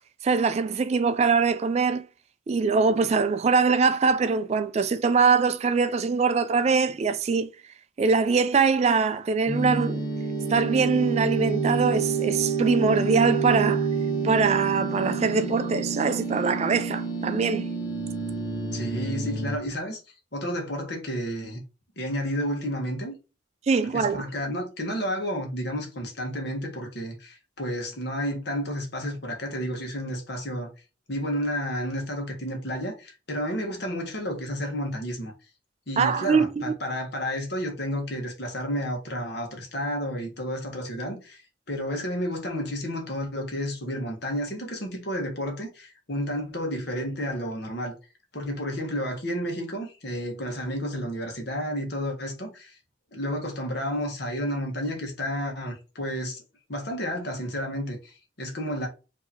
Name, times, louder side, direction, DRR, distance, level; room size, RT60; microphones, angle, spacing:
voice 1, 0.2-2.0 2.5-7.5 8.0-10.1 10.5-13.9 14.2-17.7 23.7-24.2 36.0-36.7, right 5 dB, 35° right, 0.3 m, -23 dB
sound 1, 9.5-19.6, right 4 dB, 80° left, 0.9 m, -28 dB
voice 2, 18.7-20.0 20.3-21.6 22.0-23.1 23.9-30.7 31.1-35.3 35.9-47.9 48.3-52.8 53.1-56.4 56.7-58.9, equal, 60° left, 1.3 m, -31 dB
4.8 x 2.8 x 2.8 m
head